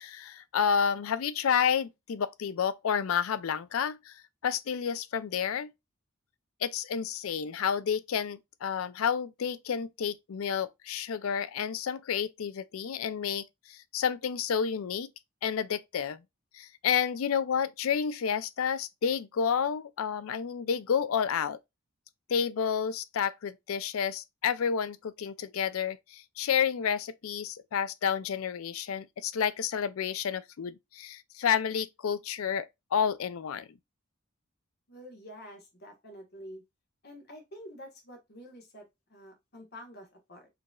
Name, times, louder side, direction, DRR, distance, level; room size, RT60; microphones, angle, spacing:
voice 1, 0.0-5.7 6.6-15.1 15.4-16.2 16.5-21.6 22.3-33.7, left 7 dB, 85° left, 0.4 m, -30 dB
voice 2, 34.9-36.6 37.0-40.5, equal, 50° left, 1.3 m, -48 dB
5.0 x 3.0 x 2.3 m
head